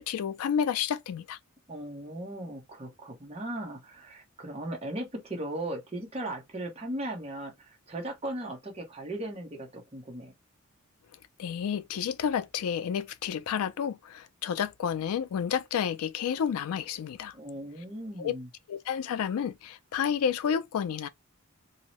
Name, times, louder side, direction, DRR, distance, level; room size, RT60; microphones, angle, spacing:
voice 1, 0.0-1.4 11.4-17.3 18.2-18.4 18.7-21.1, left 8 dB, 85° left, 0.3 m, -30 dB
voice 2, 1.7-10.3 17.3-18.5, right 1 dB, 25° right, 0.7 m, -37 dB
2.7 x 2.0 x 2.9 m
head